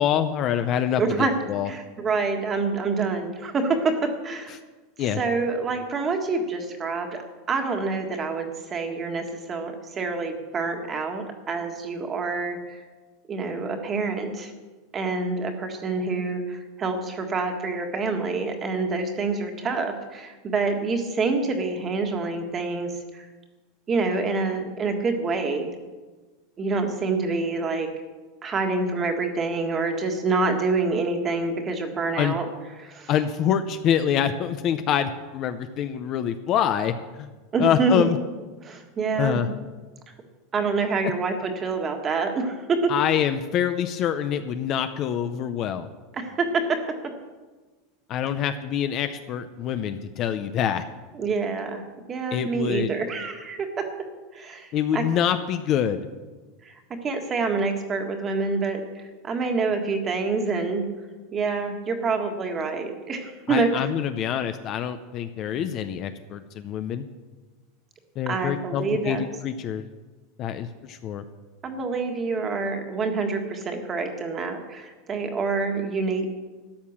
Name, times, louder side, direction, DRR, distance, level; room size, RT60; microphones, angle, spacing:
voice 1, 0.0-1.7 5.0-5.2 32.2-32.3 33.1-37.3 37.6-38.2 39.2-39.5 42.9-45.9 48.1-50.8 52.3-52.9 54.7-56.0 63.5-67.0 68.2-69.8 70.4-71.2, left 9 dB, 35° left, 10 dB, 0.6 m, -25 dB
voice 2, 1.0-1.3 1.6-4.6 5.2-7.2 7.5-12.8 13.3-14.5 14.9-23.3 23.9-25.7 26.6-27.9 28.4-32.5 32.8-33.1 37.5-38.1 38.6-39.4 40.5-42.9 46.1-46.8 51.1-51.8 52.1-53.9 54.3-55.0 56.6-56.7 57.0-60.8 61.3-63.8 68.3-69.2 71.6-76.3, right 4 dB, 20° right, 5 dB, 1.6 m, -27 dB
13.0 x 9.6 x 7.3 m, 1.3 s
supercardioid pair, 165°, 0 cm